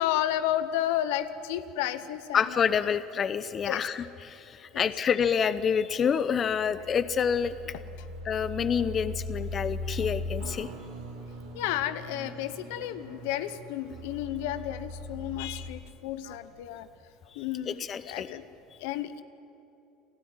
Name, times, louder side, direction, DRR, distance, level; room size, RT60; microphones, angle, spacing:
voice 1, 0.0-2.6 3.7-3.8 4.7-4.9 11.5-16.9 17.4-18.4 18.8-19.2, left 12 dB, 80° left, 12 dB, 1.0 m, -32 dB
voice 2, 2.3-7.5 8.2-10.7 17.7-18.3, left 7 dB, 35° left, 14 dB, 0.8 m, -28 dB
sound 1, 6.5-15.7, left 1 dB, 80° right, 3.3 m, -39 dB
29.0 x 12.5 x 9.5 m, 2.8 s
supercardioid pair, 100°, 0 cm